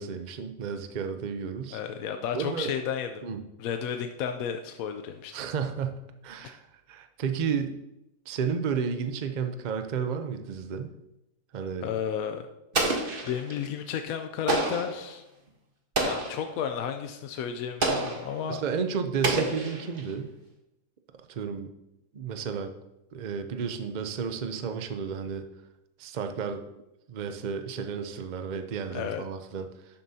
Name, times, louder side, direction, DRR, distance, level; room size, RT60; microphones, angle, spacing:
voice 1, 0.0-1.8 2.3-2.7 3.2-3.4 5.3-6.6 6.9-7.8 8.3-10.9 11.5-11.9 18.5-20.3 21.3-21.7 22.1-22.7 23.1-25.4 26.0-26.6 27.1-29.7, right 6 dB, 70° right, 7 dB, 0.4 m, -32 dB
voice 2, 1.7-3.2 3.6-5.3 6.4-6.5 11.8-12.5 13.3-15.2 16.0-18.6 28.9-29.2, left 8 dB, 70° left, 6 dB, 1.0 m, -32 dB
Explosion, 12.7-13.7 14.5-15.0 16.0-16.5 17.8-18.4 19.2-20.1, right 2 dB, 35° right, 1.3 m, -28 dB
11.5 x 7.6 x 2.8 m, 0.89 s
omnidirectional pair, 1.7 m